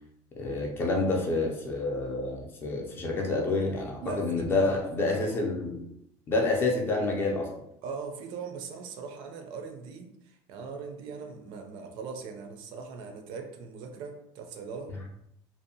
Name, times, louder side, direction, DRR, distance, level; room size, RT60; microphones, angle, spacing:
voice 1, 0.4-5.8 6.3-7.5, left 2 dB, 20° left, 0 dB, 0.3 m, -28 dB
voice 2, 4.0-5.4 7.8-15.1, right 5 dB, 50° right, 4 dB, 0.4 m, -40 dB
2.6 x 2.0 x 2.6 m, 0.77 s
cardioid pair, 180°, 10 cm